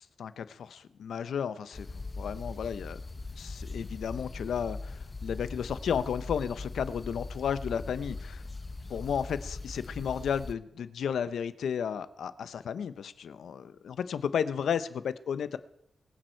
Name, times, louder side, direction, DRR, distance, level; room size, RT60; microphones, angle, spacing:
voice 1, 0.2-3.0 3.4-8.4 8.9-15.6, left 7 dB, 85° left, 14 dB, 0.8 m, -33 dB
sound 1, 1.7-10.5, left 3 dB, 30° left, 0.9 m, -40 dB
22.0 x 9.1 x 4.6 m, 0.74 s
wide cardioid pair, 115°, 0 cm